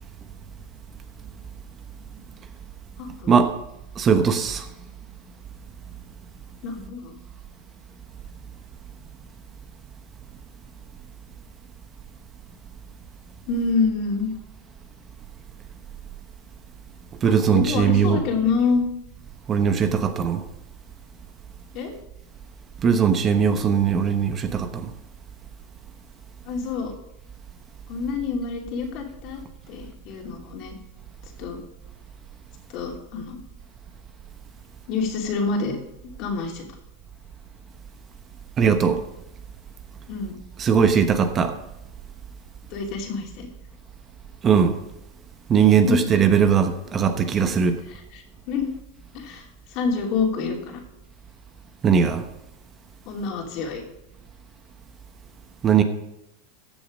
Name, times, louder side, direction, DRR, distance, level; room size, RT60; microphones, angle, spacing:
voice 1, 3.0-3.3 6.6-7.1 13.5-14.3 17.2-18.8 21.7-21.9 26.4-26.9 27.9-29.4 29.7-30.7 31.4-31.6 32.7-33.4 34.9-35.8 36.2-36.8 40.1-40.4 42.7-43.5 45.9-46.0 47.9-48.7 49.1-50.8 53.0-53.8, left 4 dB, 50° left, 2.9 m, -27 dB
voice 2, 4.0-4.7 17.2-18.2 19.5-20.4 22.8-24.9 38.6-39.0 40.6-41.6 44.4-44.8 45.5-47.8 51.8-52.2 55.6-55.8, right 7 dB, 25° right, 1.0 m, -19 dB
14.5 x 6.9 x 5.2 m
supercardioid pair, 125°, 0 cm